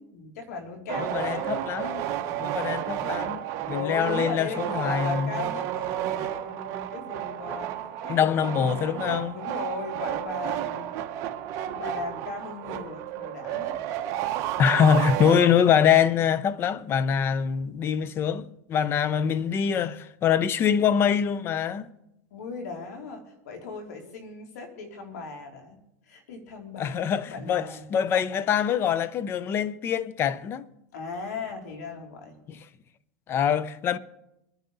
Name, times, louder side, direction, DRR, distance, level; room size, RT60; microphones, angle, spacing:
voice 1, 0.0-1.5 2.7-7.7 8.0-8.8 9.3-10.9 11.7-13.8 19.0-19.5 22.3-25.8 26.1-27.9 30.9-32.4, left 4 dB, 85° left, 3.3 m, -38 dB
sound 1, 0.9-15.9, right 12 dB, 40° right, 1.2 m, -32 dB
voice 2, 1.0-2.1 2.4-3.4 3.7-5.5 8.1-9.4 14.6-21.9 26.8-30.7 32.5-32.6 33.3-34.0, left 8 dB, 25° left, 0.6 m, -24 dB
23.5 x 10.0 x 4.1 m
supercardioid pair, 150°, 9 cm